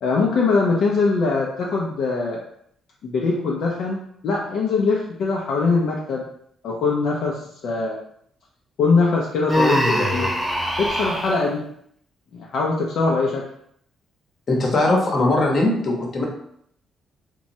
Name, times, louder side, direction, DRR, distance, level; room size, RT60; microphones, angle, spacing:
voice 1, 0.0-2.4 3.0-4.0 4.2-6.2 6.6-8.0 8.8-10.3 10.8-11.7 12.3-13.5, left 4 dB, 70° left, -2 dB, 0.4 m, -22 dB
Human voice, 9.5-11.4, equal, ahead, 0.5 m, -22 dB
voice 2, 14.5-16.2, left 2 dB, 45° left, -1 dB, 0.8 m, -20 dB
3.0 x 2.2 x 2.6 m, 0.69 s
cardioid pair, 90°, 0 cm